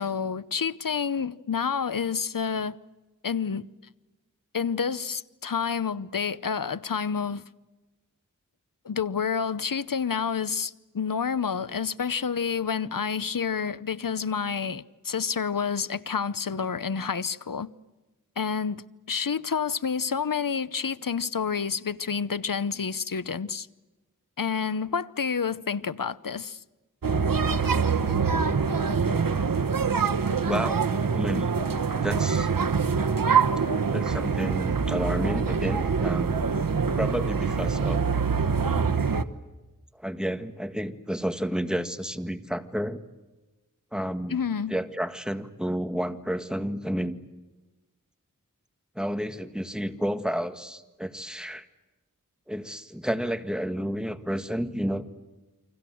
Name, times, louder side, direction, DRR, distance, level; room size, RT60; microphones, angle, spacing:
voice 1, 0.0-2.8 3.2-3.6 4.5-7.4 8.8-17.7 18.4-18.8 19.1-23.7 24.4-26.6 44.3-44.8, left 6 dB, 75° left, 0.9 m, -29 dB
sound 1, 27.0-39.2, right 5 dB, 85° right, 1.1 m, -25 dB
voice 2, 30.5-30.8 31.1-31.5 32.0-32.5 33.9-36.4 37.0-38.2 40.0-43.0 43.9-44.4 44.7-47.2 49.0-51.7 52.5-55.0, equal, ahead, 1.9 m, -31 dB
29.5 x 25.0 x 7.8 m
wide cardioid pair, 50°, 33 cm